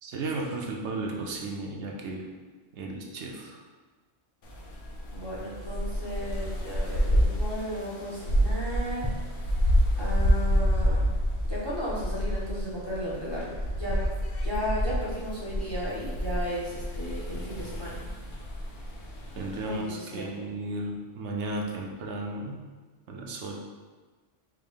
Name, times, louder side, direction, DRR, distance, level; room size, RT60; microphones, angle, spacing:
voice 1, 0.0-2.3 2.7-3.6 19.4-22.7 23.1-23.6, right 2 dB, 75° right, 0 dB, 0.9 m, -34 dB
sound 1, 4.4-19.8, equal, 60° left, 0.8 m, -28 dB
voice 2, 5.1-9.1 10.0-11.1 11.4-14.0 14.4-18.0 19.6-20.5, equal, 25° left, -7 dB, 0.6 m, -35 dB
4.6 x 2.0 x 3.5 m, 1.3 s
omnidirectional pair, 1.2 m